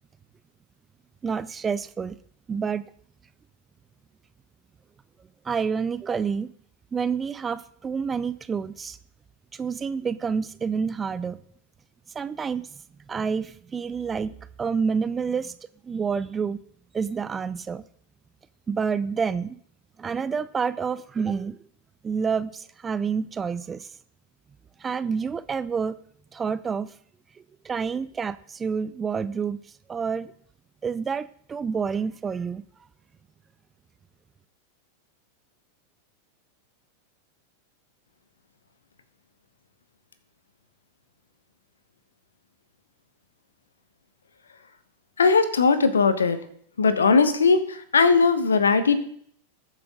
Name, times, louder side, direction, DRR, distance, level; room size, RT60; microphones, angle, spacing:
voice 1, 1.2-2.2 2.5-2.9 5.4-6.5 6.9-9.0 9.5-11.4 12.1-12.7 13.1-15.5 15.8-16.6 16.9-17.8 18.7-19.6 20.0-21.6 22.0-23.9 24.8-26.0 26.3-26.9 27.6-29.6 29.9-30.3 30.8-32.6, right 6 dB, 20° right, 15 dB, 0.5 m, -28 dB
voice 2, 45.2-46.4 46.8-49.0, left 4 dB, 70° left, 12 dB, 1.2 m, -19 dB
19.5 x 7.7 x 3.8 m, 0.63 s
figure-of-eight pair, 90°, 0 cm